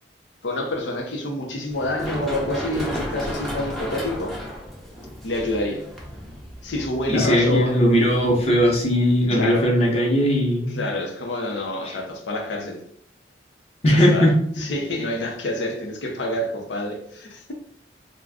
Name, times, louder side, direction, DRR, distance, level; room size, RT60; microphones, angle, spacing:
voice 1, 0.4-4.4 5.2-5.9 6.6-7.8 9.3-9.7 10.7-12.8 13.9-14.3 14.6-17.5, left 1 dB, 80° left, 2 dB, 0.6 m, -28 dB
Run, 1.7-9.2, equal, ahead, 0.5 m, -34 dB
voice 2, 7.1-10.8 11.9-12.0 13.8-14.3, equal, 35° left, -2 dB, 0.8 m, -18 dB
2.4 x 2.2 x 3.4 m, 0.64 s
head